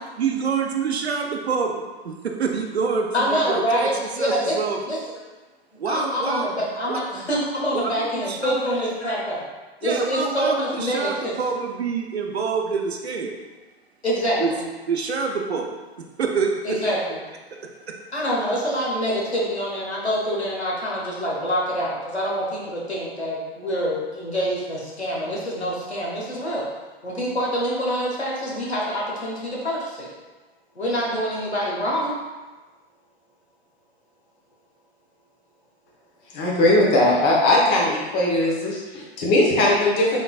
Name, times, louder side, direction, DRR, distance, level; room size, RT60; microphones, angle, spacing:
voice 1, 0.2-1.8 2.2-3.9 4.2-4.8 5.8-6.5 6.9-7.0 7.7-8.6 9.8-13.3 14.4-14.5 14.9-15.7 16.2-16.8 17.9-18.0, right 5 dB, 75° right, 2 dB, 0.6 m, -26 dB
voice 2, 3.1-4.6 4.9-5.0 5.9-9.4 9.8-11.3 14.0-14.6 16.6-17.2 18.1-26.7 27.0-30.1 30.7-32.2, equal, 85° left, -5 dB, 1.2 m, -26 dB
voice 3, 36.3-40.2, left 1 dB, 30° left, -3 dB, 0.9 m, -19 dB
3.8 x 3.4 x 2.4 m, 1.2 s
figure-of-eight pair, 105°, 32 cm